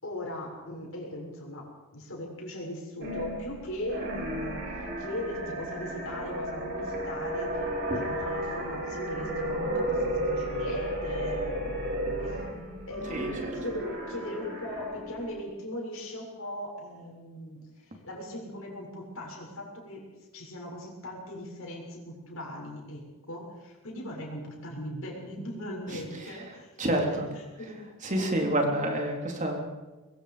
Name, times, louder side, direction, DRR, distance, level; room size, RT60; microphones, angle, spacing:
voice 1, 0.0-12.4 12.9-13.2 13.5-26.7 27.0-27.8, left 1 dB, 65° left, 0 dB, 7.2 m, -39 dB
sound 1, 3.0-15.3, right 1 dB, 55° right, 5.8 m, -33 dB
Wind instrument woodwind instrument, 7.5-15.7, equal, 10° left, 3.8 m, -46 dB
voice 2, 13.1-13.6 25.9-26.0 26.3-26.4 26.8-27.3 28.0-29.6, right 1 dB, 35° right, 2 dB, 3.7 m, -28 dB
24.0 x 22.0 x 5.3 m, 1.2 s
head